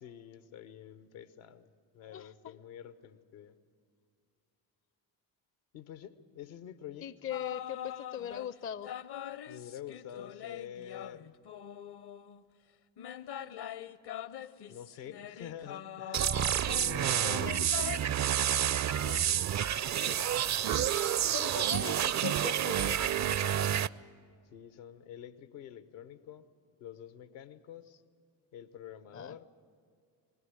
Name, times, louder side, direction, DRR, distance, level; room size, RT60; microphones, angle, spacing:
voice 1, 0.0-3.5 5.7-7.1 9.5-11.3 14.7-18.0 19.0-19.6 20.0-21.1 24.5-26.5 26.8-28.0 28.5-29.4, left 10 dB, 75° left, 13 dB, 1.0 m, -47 dB
voice 2, 2.1-2.6 7.0-8.9 21.3-23.5 29.1-29.4, left 9 dB, 25° left, 18 dB, 0.5 m, -40 dB
sound 1, 7.3-8.5 8.8-12.4 13.0-18.0, left 10 dB, 50° left, 0.8 m, -43 dB
sound 2, 16.1-23.9, right 10 dB, 35° right, 0.5 m, -29 dB
20.5 x 15.0 x 9.7 m, 2.2 s
hypercardioid pair, 40°, 50 cm